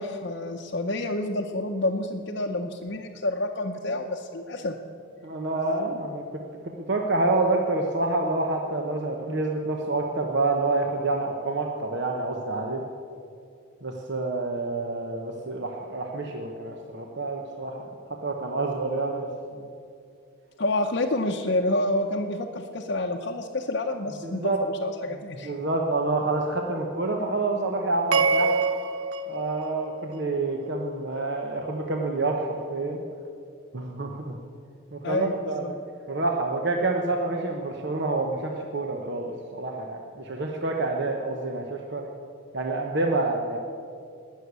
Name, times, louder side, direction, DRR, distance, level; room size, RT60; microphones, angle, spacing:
voice 1, 0.0-4.7 20.6-25.5 35.0-35.7, left 2 dB, 50° left, 0 dB, 0.7 m, -28 dB
voice 2, 5.2-6.4 6.9-12.8 13.8-17.9 18.2-19.7 24.2-24.6 25.4-28.6 29.3-33.0 33.7-34.4 34.9-35.8 36.1-42.0 42.5-43.6, right 2 dB, 55° right, 2 dB, 1.0 m, -28 dB
sound 1, 28.1-30.5, right 4 dB, 85° right, 0.7 m, -26 dB
19.5 x 6.5 x 8.2 m, 2.5 s
head